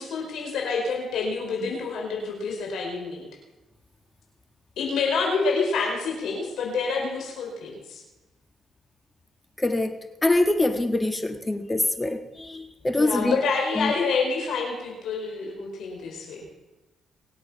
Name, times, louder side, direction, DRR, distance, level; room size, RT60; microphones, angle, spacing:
voice 1, 0.0-3.3 4.8-8.0 12.9-16.5, left 4 dB, 80° left, 0 dB, 4.7 m, -27 dB
voice 2, 9.6-10.0 10.2-13.4 13.7-13.9, left 2 dB, 15° left, 8 dB, 1.4 m, -24 dB
24.0 x 8.1 x 5.7 m, 1.1 s
cardioid pair, 75°, 0 cm